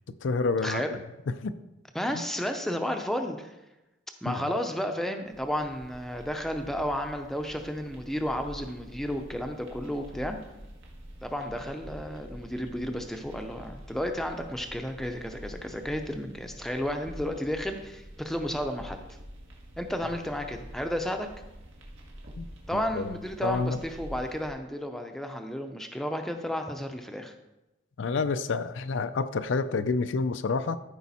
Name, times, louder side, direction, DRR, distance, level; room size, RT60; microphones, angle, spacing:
voice 1, 0.2-1.0 1.4-1.6 4.3-4.4 22.4-22.5 22.9-23.1 23.4-23.8 28.0-30.8, left 4 dB, 70° left, 11 dB, 0.4 m, -28 dB
voice 2, 1.9-3.6 4.2-10.4 11.2-19.0 19.8-21.3 22.7-27.3, equal, ahead, 5 dB, 0.6 m, -32 dB
sound 1, 5.3-24.5, equal, 75° right, 1.8 m, -46 dB
13.5 x 5.2 x 4.2 m, 0.99 s
head